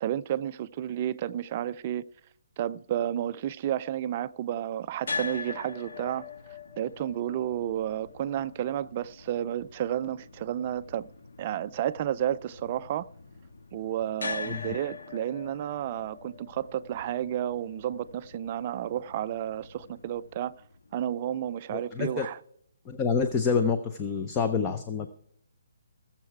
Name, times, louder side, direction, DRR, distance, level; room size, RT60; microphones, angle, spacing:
voice 1, 0.0-2.1 2.6-6.3 6.8-11.1 11.4-13.1 13.7-20.5 20.9-22.4, right 11 dB, 25° right, 0.4 m, -31 dB
sound 1, 5.0-21.2, left 4 dB, 70° left, 1.5 m, -43 dB
voice 2, 21.7-22.3 22.9-25.1, left 5 dB, 15° left, 0.6 m, -27 dB
18.5 x 7.3 x 4.7 m
hypercardioid pair, 170°, 0 cm